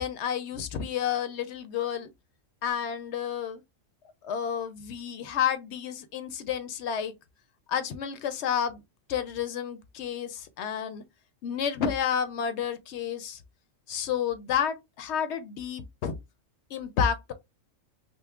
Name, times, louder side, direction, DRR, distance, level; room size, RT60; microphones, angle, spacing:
voice 1, 0.0-2.1 2.6-3.6 4.2-7.1 7.7-8.8 9.1-11.0 11.4-13.4 13.9-16.1 16.7-17.3, left 8 dB, 65° left, 0.8 m, -30 dB
5.3 x 2.0 x 2.3 m
omnidirectional pair, 1.3 m